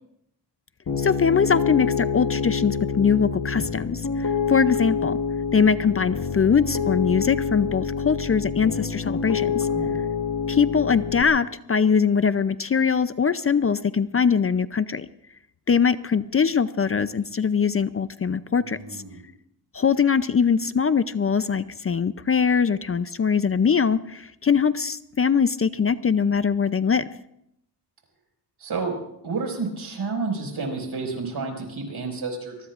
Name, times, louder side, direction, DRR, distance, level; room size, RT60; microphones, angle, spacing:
Piano, 0.9-11.2, left 5 dB, 50° left, 1.3 m, -27 dB
voice 1, 1.0-5.2 5.5-9.7 10.5-15.1 15.7-19.0 19.7-27.0, left 6 dB, 35° left, 13 dB, 0.5 m, -22 dB
voice 2, 9.7-10.0 18.6-19.2 28.6-29.0 29.2-32.7, right 4 dB, 70° right, 2 dB, 5.7 m, -30 dB
23.5 x 22.5 x 2.5 m, 0.77 s
wide cardioid pair, 100°, 40 cm